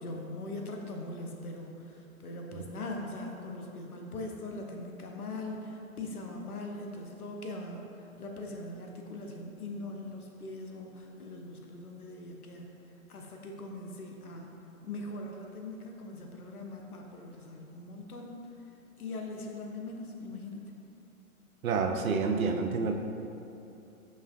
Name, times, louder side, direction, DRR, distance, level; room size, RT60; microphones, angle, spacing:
voice 1, 0.0-12.7 13.1-14.5 14.8-18.4 19.0-20.6, left 2 dB, 85° left, 1 dB, 0.6 m, -41 dB
voice 2, 21.6-22.9, right 4 dB, 70° right, 5 dB, 0.5 m, -28 dB
5.4 x 3.3 x 2.4 m, 2.8 s
figure-of-eight pair, 120°, 43 cm